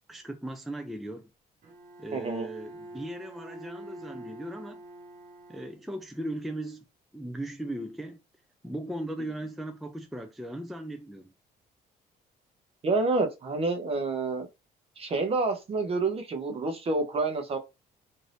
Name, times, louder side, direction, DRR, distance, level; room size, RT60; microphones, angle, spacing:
voice 1, 0.1-1.3 2.0-4.8 5.5-6.8 7.1-8.2 8.6-11.3, right 1 dB, ahead, 0.4 m, -37 dB
Bowed string instrument, 1.6-6.2, right 1 dB, 55° right, 1.2 m, -46 dB
voice 2, 2.1-2.5 12.8-14.5 15.0-17.6, right 3 dB, 35° right, 0.8 m, -28 dB
2.6 x 2.6 x 3.3 m
cardioid pair, 110°, 17 cm